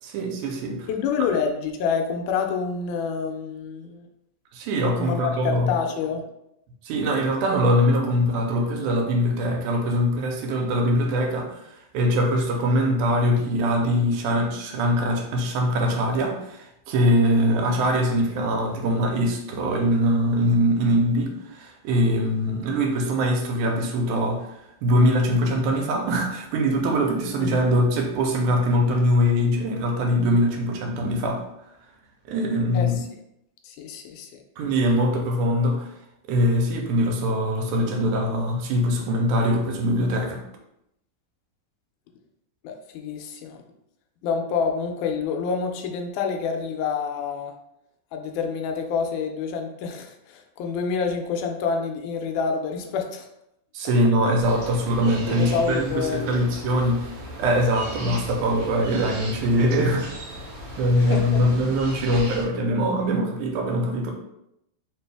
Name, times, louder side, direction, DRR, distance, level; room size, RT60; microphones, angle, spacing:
voice 1, 0.0-0.9 4.5-5.7 6.8-24.5 24.8-31.4 32.3-33.0 34.6-35.9 36.3-40.4 53.7-57.1 57.4-60.1 60.8-64.1, equal, 85° right, 2 dB, 2.0 m, -22 dB
voice 2, 0.9-4.1 5.0-6.3 27.4-27.6 32.7-33.1 33.6-34.4 42.6-43.6 44.2-47.5 48.1-53.3 55.4-56.4 61.0-61.4, left 5 dB, 85° left, 4 dB, 2.0 m, -27 dB
sound 1, 54.4-62.4, equal, 70° right, 1.5 m, -37 dB
4.7 x 2.6 x 3.4 m, 0.81 s
omnidirectional pair, 3.5 m